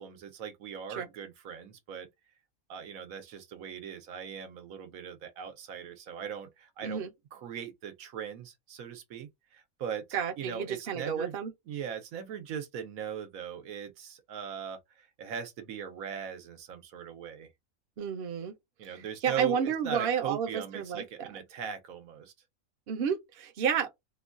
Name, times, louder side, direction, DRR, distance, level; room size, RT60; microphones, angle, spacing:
voice 1, 0.0-2.1 2.7-7.1 7.3-10.0 10.4-11.3 11.7-17.5 18.8-22.3, right 8 dB, 90° right, 1.2 m, -40 dB
voice 2, 10.1-11.5 18.0-18.5 18.9-21.3 22.9-23.9, right 7 dB, 55° right, 0.8 m, -31 dB
3.0 x 2.2 x 2.4 m
omnidirectional pair, 1.4 m